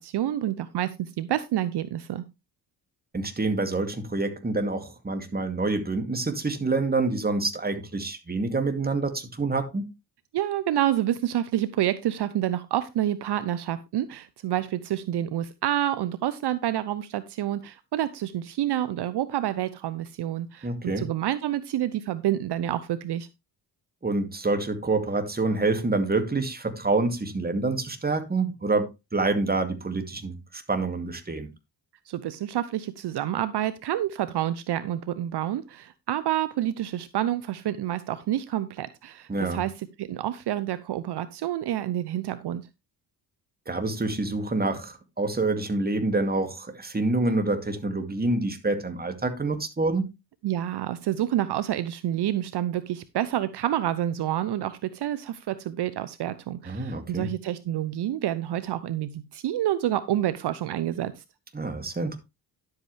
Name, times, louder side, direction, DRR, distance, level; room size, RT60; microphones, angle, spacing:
voice 1, 0.0-2.2 10.3-23.3 32.1-42.7 50.4-61.2, right 12 dB, 65° right, 0.8 m, -28 dB
voice 2, 3.1-9.8 20.6-21.1 24.0-31.5 39.3-39.6 43.7-50.1 56.6-57.3 61.5-62.2, right 3 dB, 20° right, 2.3 m, -27 dB
11.0 x 8.2 x 3.3 m
cardioid pair, 80°, 43 cm